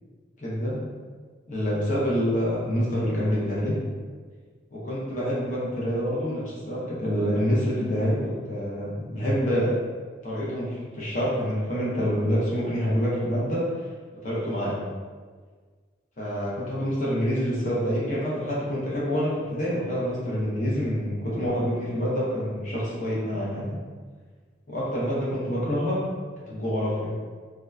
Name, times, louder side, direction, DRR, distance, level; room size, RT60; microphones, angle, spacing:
voice 1, 0.4-0.9 1.5-3.7 4.7-9.7 10.2-13.8 14.2-14.8 16.2-23.8 24.7-26.0 26.5-27.2, equal, 40° left, -7 dB, 0.8 m, -27 dB
2.8 x 2.3 x 2.3 m, 1.5 s
head